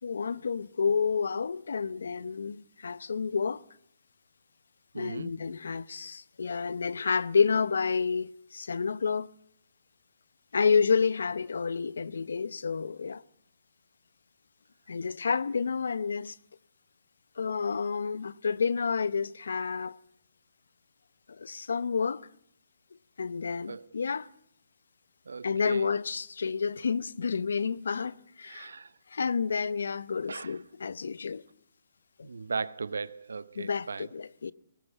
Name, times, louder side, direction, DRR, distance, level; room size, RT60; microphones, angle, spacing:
voice 1, 0.0-3.6 4.9-9.3 10.5-13.2 14.9-16.4 17.4-20.0 21.4-22.3 23.2-24.3 25.4-28.7 29.1-31.4 32.2-32.3 33.6-34.5, left 5 dB, 80° left, 0.8 m, -29 dB
voice 2, 4.9-5.3 23.7-23.9 25.3-25.9 28.4-28.9 30.3-30.6 32.2-34.1, right 4 dB, 90° right, 0.8 m, -37 dB
19.0 x 18.5 x 8.3 m
hypercardioid pair, 150°, 0 cm